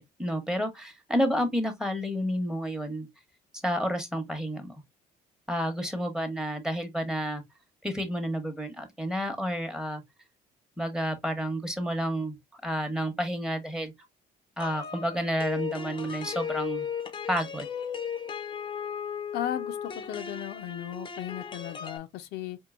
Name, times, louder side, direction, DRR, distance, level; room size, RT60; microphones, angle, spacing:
voice 1, 0.0-3.1 3.6-4.8 5.5-7.4 7.8-10.0 10.8-12.4 12.6-13.9 14.6-16.9 17.3-17.7, equal, 5° right, 0.9 m, -30 dB
sound 1, 14.6-22.0, left 7 dB, 30° left, 0.6 m, -36 dB
voice 2, 19.3-22.6, left 12 dB, 80° left, 0.6 m, -36 dB
4.5 x 2.6 x 2.4 m
cardioid pair, 110°, 17 cm